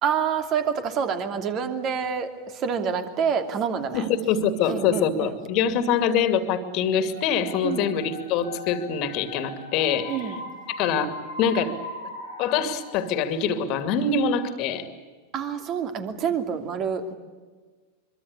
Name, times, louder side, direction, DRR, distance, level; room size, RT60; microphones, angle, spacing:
voice 1, 0.0-4.1 4.7-5.4 7.6-7.9 10.1-10.4 15.3-17.1, right 7 dB, 35° right, 7 dB, 2.8 m, -27 dB
voice 2, 3.9-10.2 10.7-11.8 12.4-14.9, left 6 dB, 40° left, 9 dB, 2.5 m, -24 dB
sound 1, 7.0-13.8, left 1 dB, 90° right, 7.9 m, -40 dB
24.5 x 24.0 x 8.4 m, 1.4 s
figure-of-eight pair, 90°, 0 cm